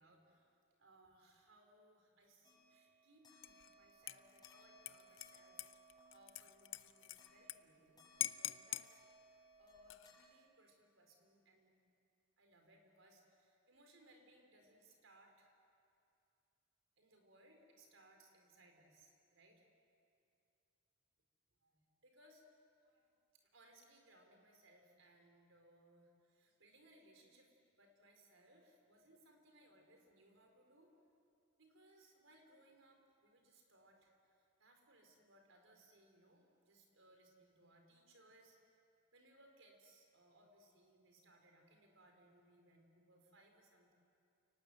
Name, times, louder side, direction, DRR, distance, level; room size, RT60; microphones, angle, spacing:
voice 1, 0.0-9.0 9.6-11.8 12.4-15.6 17.0-19.7 21.6-22.4 22.8-23.1 23.5-30.9 31.6-38.6 39.1-43.9, right 1 dB, 80° right, 3 dB, 4.4 m, -67 dB
sound 1, 2.4-10.7, right 1 dB, 20° left, 5.8 m, -66 dB
Dishes pots and pans / Liquid, 3.4-3.7 4.1-7.6 7.8-7.9 8.2-8.9 9.7-10.2, left 14 dB, 70° left, 0.6 m, -45 dB
29.0 x 19.0 x 8.1 m, 2.6 s
head